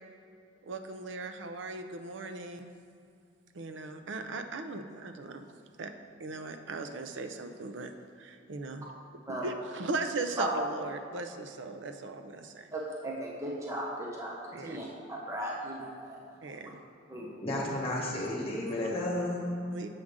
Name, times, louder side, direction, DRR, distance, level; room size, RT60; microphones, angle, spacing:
voice 1, 0.6-2.7 3.5-5.5 5.8-5.9 6.2-8.9 9.3-12.7 14.5-14.8 16.4-16.8 19.7-19.9, right 3 dB, 80° right, 7 dB, 0.5 m, -38 dB
voice 2, 12.7-16.2 17.1-17.3, right 1 dB, 15° right, -4 dB, 0.8 m, -37 dB
voice 3, 17.4-19.6, left 1 dB, 30° left, -3 dB, 1.5 m, -32 dB
7.7 x 6.2 x 3.6 m, 2.5 s
head